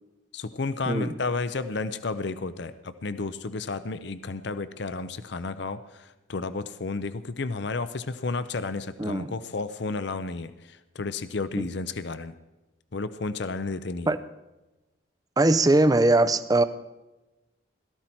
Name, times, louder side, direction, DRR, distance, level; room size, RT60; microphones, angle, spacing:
voice 1, 0.3-12.3 12.9-14.1, left 3 dB, 55° left, 12 dB, 0.6 m, -32 dB
voice 2, 9.0-9.3 11.6-11.7 14.1-14.2 15.4-16.6, right 2 dB, 20° right, 12 dB, 0.5 m, -21 dB
17.5 x 13.5 x 4.5 m, 1.0 s
head